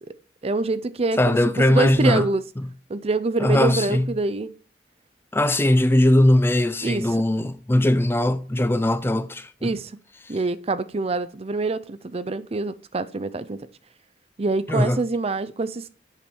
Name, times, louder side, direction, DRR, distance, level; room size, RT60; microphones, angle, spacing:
voice 1, 0.4-1.4 1.7-2.4 2.9-4.6 6.8-7.1 9.6-9.9 10.3-13.7 14.4-15.9, right 3 dB, 35° right, 0.5 m, -25 dB
voice 2, 1.2-2.3 3.4-4.1 5.3-9.7 14.7-15.0, left 1 dB, 15° left, 0.4 m, -20 dB
8.1 x 5.3 x 4.3 m
head